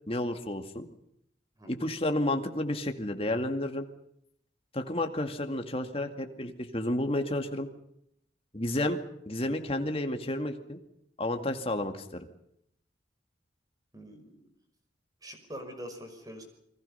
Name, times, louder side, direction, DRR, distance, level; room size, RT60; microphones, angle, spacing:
voice 1, 0.1-0.9 1.7-3.9 4.7-7.7 8.5-9.0 9.3-10.8 11.2-12.3, left 1 dB, 30° left, 5 dB, 2.2 m, -31 dB
voice 2, 1.6-1.9 13.9-14.4 15.2-16.4, equal, 20° right, 5 dB, 5.6 m, -44 dB
29.0 x 22.0 x 5.7 m, 0.75 s
head